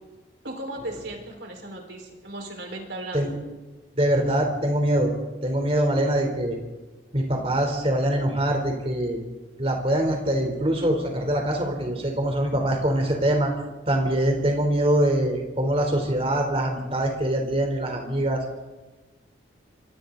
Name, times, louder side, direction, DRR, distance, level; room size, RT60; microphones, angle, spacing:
voice 1, 0.4-3.3, right 1 dB, 65° right, 2 dB, 4.7 m, -36 dB
voice 2, 4.0-5.1 5.4-6.6 7.1-9.2 9.6-13.5 13.9-18.4, right 1 dB, 30° right, 2 dB, 3.7 m, -23 dB
27.0 x 24.5 x 4.0 m, 1.2 s
head